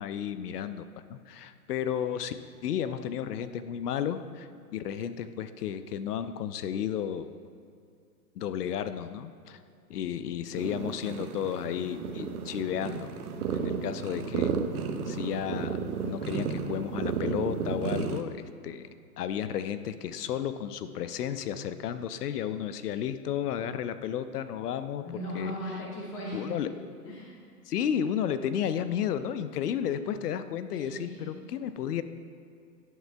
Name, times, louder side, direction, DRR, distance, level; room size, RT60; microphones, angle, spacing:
voice 1, 0.0-2.3 2.6-7.3 8.4-9.6 9.9-13.1 13.5-14.5 15.1-15.8 16.0-18.9 19.2-25.1 25.3-25.5 26.3-27.2 27.7-32.0, left 9 dB, 75° left, 12 dB, 0.5 m, -33 dB
sound 1, 10.5-18.2, right 6 dB, 65° right, 0.7 m, -33 dB
voice 2, 25.0-26.4 27.0-27.3 30.7-31.3, equal, 10° left, -5 dB, 0.6 m, -38 dB
11.0 x 7.4 x 2.2 m, 2.4 s
hypercardioid pair, 155°, 47 cm